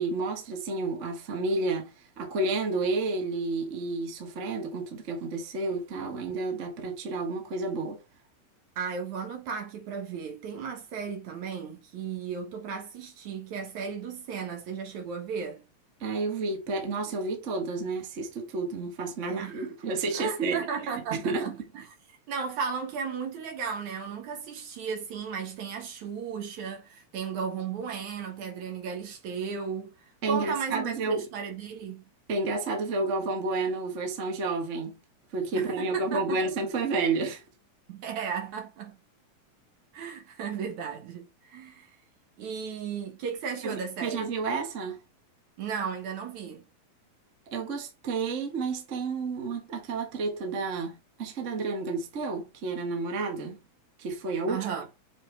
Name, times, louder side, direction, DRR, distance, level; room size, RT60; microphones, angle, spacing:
voice 1, 0.0-8.0 16.0-20.6 21.1-21.5 30.2-31.2 32.3-35.0 35.3-37.4 43.6-45.0 47.5-53.6 54.0-54.6, right 3 dB, 40° right, 1.0 m, -30 dB
voice 2, 8.8-15.6 19.2-19.7 20.1-21.9 22.3-32.0 35.5-36.4 37.9-39.0 39.9-41.9 42.4-44.3 45.6-46.7 54.5-54.9, right 6 dB, 60° right, 2.7 m, -35 dB
7.3 x 4.7 x 3.4 m
omnidirectional pair, 4.0 m